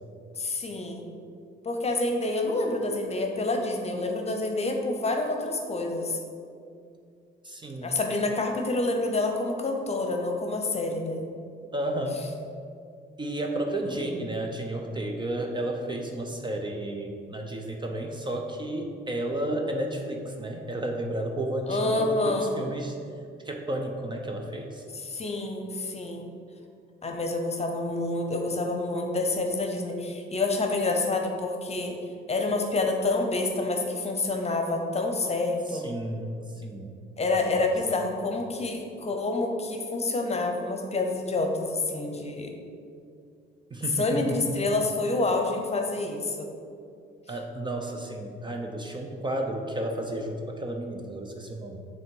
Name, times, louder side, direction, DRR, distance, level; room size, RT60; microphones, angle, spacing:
voice 1, 0.4-1.1 1.6-6.2 7.8-11.3 13.8-13.9 21.7-22.5 24.9-26.2 27.0-31.9 32.3-35.9 37.2-42.5 44.0-46.5, left 2 dB, 30° left, 3 dB, 0.8 m, -28 dB
voice 2, 7.4-8.0 11.7-12.3 13.2-23.0 23.4-24.8 35.7-36.9 37.3-38.0 43.7-44.7 47.3-51.9, right 1 dB, 25° right, 2 dB, 0.6 m, -32 dB
6.6 x 3.6 x 4.6 m, 2.4 s
cardioid pair, 90°, 20 cm